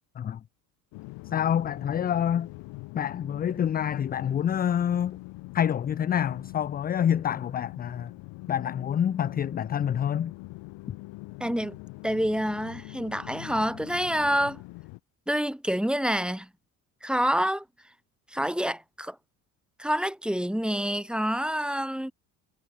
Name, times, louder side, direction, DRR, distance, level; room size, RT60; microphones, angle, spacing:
sound 1, 0.9-15.0, left 23 dB, 70° left, 1.6 m, -43 dB
voice 1, 1.3-2.5 2.9-5.2 5.5-8.1 8.5-10.3, left 9 dB, 20° left, 0.4 m, -27 dB
voice 2, 11.4-11.8 12.0-14.6 15.3-16.5 17.0-17.6 18.3-19.2 19.8-22.1, equal, ahead, 2.0 m, -27 dB
supercardioid pair, 75°, 46 cm